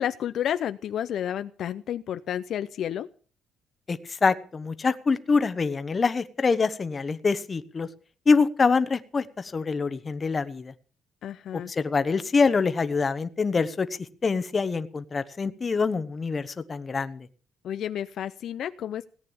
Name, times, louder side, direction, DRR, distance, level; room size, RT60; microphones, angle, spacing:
voice 1, 0.0-3.1 11.2-11.7 17.6-19.0, left 10 dB, 65° left, 12 dB, 0.6 m, -31 dB
voice 2, 3.9-7.9 8.3-10.7 11.7-13.9 14.2-17.3, left 4 dB, 30° left, 12 dB, 1.1 m, -25 dB
17.5 x 9.1 x 7.2 m, 0.41 s
cardioid pair, 130°, 0 cm